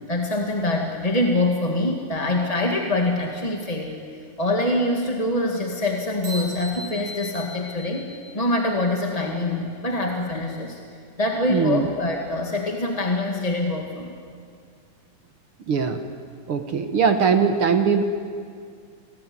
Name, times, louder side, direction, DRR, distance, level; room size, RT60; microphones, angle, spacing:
voice 1, 0.1-4.0 4.4-8.1 8.3-10.8 11.2-14.2, left 2 dB, 15° left, 1 dB, 1.3 m, -24 dB
sound 1, 6.2-8.9, left 1 dB, 90° right, 8.5 m, -38 dB
voice 2, 11.5-11.9 15.7-16.0 16.5-18.0, right 6 dB, 55° right, 7 dB, 1.8 m, -20 dB
29.5 x 19.5 x 9.6 m, 2.2 s
omnidirectional pair, 3.4 m